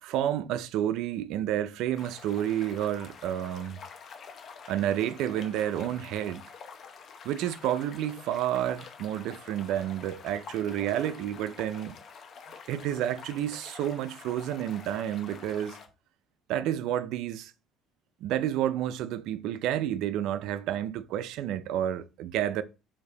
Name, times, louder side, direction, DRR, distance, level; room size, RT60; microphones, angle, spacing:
voice 1, 0.0-3.8 4.7-6.4 7.2-12.0 12.7-15.8 16.5-17.5 18.2-22.6, right 11 dB, 70° right, 0.4 m, -30 dB
sound 1, 1.9-15.9, left 5 dB, 45° left, 0.7 m, -47 dB
5.1 x 2.6 x 3.9 m
cardioid pair, 140°, 0 cm